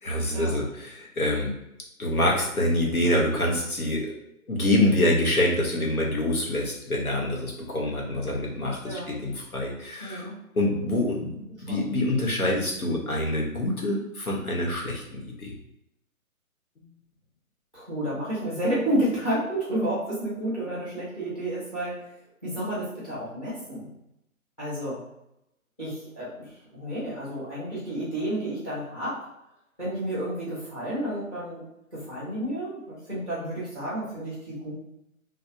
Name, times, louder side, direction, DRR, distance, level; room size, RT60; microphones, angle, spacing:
voice 1, 0.0-1.5 2.0-4.1 4.5-10.3 10.5-11.3 11.6-15.5, left 1 dB, 75° left, -1 dB, 1.1 m, -26 dB
voice 2, 8.8-9.2 10.0-10.4 11.7-11.9 17.7-22.0 22.4-23.9 24.6-25.0 25.8-29.2 29.8-31.6 31.9-34.7, right 1 dB, 5° left, -8 dB, 0.7 m, -31 dB
3.2 x 2.2 x 2.8 m, 0.83 s
figure-of-eight pair, 140°, 43 cm